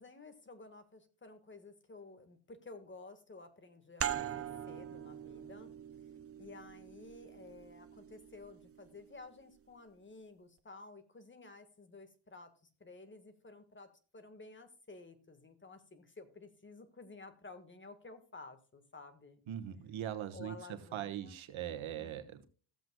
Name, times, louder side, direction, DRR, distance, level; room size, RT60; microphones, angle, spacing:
voice 1, 0.0-5.7 6.4-12.5 12.8-19.4 20.3-21.4 21.9-22.3, left 3 dB, 25° left, 1.6 m, -53 dB
sound 1, 4.0-9.3, right 9 dB, 30° right, 0.6 m, -43 dB
voice 2, 19.5-22.4, right 10 dB, 70° right, 1.4 m, -41 dB
16.0 x 7.8 x 2.3 m
cardioid pair, 115°, 49 cm